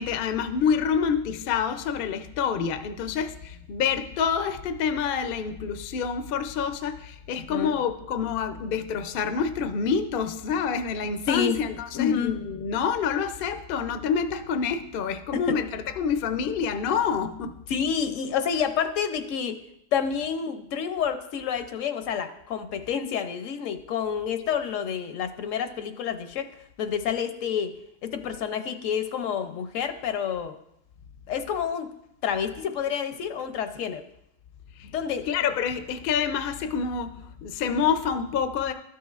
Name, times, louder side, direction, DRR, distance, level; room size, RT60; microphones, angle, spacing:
voice 1, 0.0-17.6 34.8-34.9 35.3-38.7, left 6 dB, 60° left, 8 dB, 0.6 m, -27 dB
voice 2, 11.3-11.6 11.9-12.3 15.3-15.6 17.7-19.6 19.9-26.5 26.8-27.7 28.0-30.6 31.3-31.9 32.2-34.0 34.9-35.3, left 7 dB, 75° left, 9 dB, 1.0 m, -28 dB
12.5 x 6.2 x 2.4 m, 0.80 s
omnidirectional pair, 1.4 m